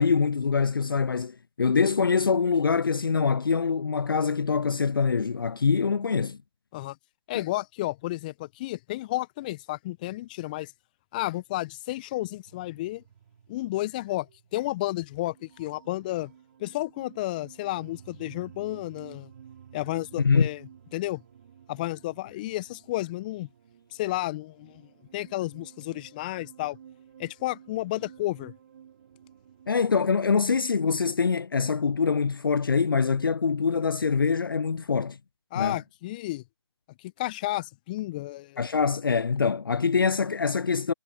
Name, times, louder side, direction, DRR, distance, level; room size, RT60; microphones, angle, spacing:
voice 1, 0.0-6.4 7.3-7.4 20.2-20.5 29.7-35.2 35.5-35.8 38.6-40.9, left 5 dB, 50° left, 0.7 m, -24 dB
voice 2, 7.3-10.7 11.1-13.0 13.5-16.3 16.6-19.3 19.7-20.6 20.9-21.2 21.7-23.5 23.9-24.8 25.1-26.8 27.2-28.5 35.5-36.4 37.0-38.6, left 17 dB, 15° left, 1.3 m, -32 dB
sound 1, 12.5-31.3, right 8 dB, 35° right, 4.3 m, -53 dB
figure-of-eight pair, 155°, 15 cm